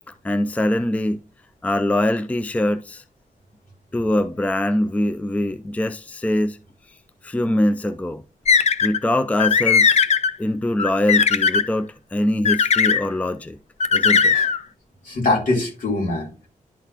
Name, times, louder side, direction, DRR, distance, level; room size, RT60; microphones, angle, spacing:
voice 1, 0.2-1.2 1.6-3.0 3.9-6.6 7.2-8.2 8.8-10.0 10.4-13.6 13.9-14.3, left 1 dB, 10° left, 0.4 m, -23 dB
sound 1, 8.5-9.0 9.4-10.3 10.8-11.6 12.4-13.0 13.8-14.6, left 6 dB, 55° left, 0.6 m, -17 dB
voice 2, 15.0-16.5, left 2 dB, 80° left, 3.6 m, -23 dB
11.5 x 4.0 x 2.9 m
wide cardioid pair, 140°, 13 cm